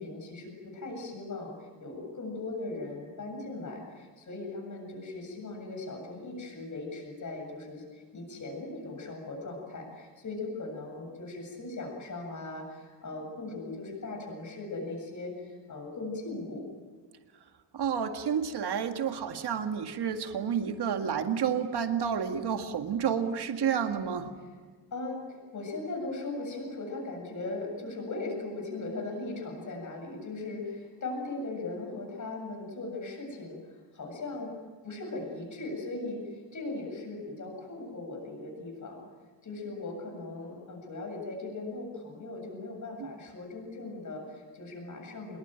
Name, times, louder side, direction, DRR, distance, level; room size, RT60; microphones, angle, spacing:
voice 1, 0.0-16.6 24.4-24.5 24.9-34.5 34.8-39.0 39.4-45.4, left 2 dB, 35° left, 1 dB, 7.7 m, -39 dB
voice 2, 17.7-24.3, right 7 dB, 50° right, 6 dB, 2.1 m, -30 dB
25.5 x 21.5 x 9.1 m, 1.5 s
wide cardioid pair, 165°, 49 cm